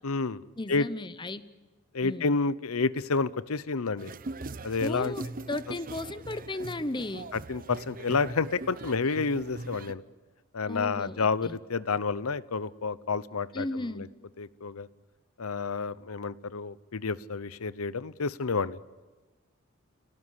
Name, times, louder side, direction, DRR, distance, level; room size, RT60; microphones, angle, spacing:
voice 1, 0.0-0.4 0.7-0.9 1.9-4.1 4.6-5.1 7.3-10.0 10.5-14.1 14.4-14.9 15.4-18.8, left 4 dB, 85° left, 17 dB, 0.8 m, -30 dB
voice 2, 0.6-1.4 2.0-2.3 4.8-7.3 10.7-11.6 13.5-14.1, left 2 dB, 20° left, 14 dB, 0.9 m, -35 dB
sound 1, 4.0-9.9, right 3 dB, 40° right, 0.7 m, -41 dB
29.5 x 17.5 x 9.9 m, 1.3 s
head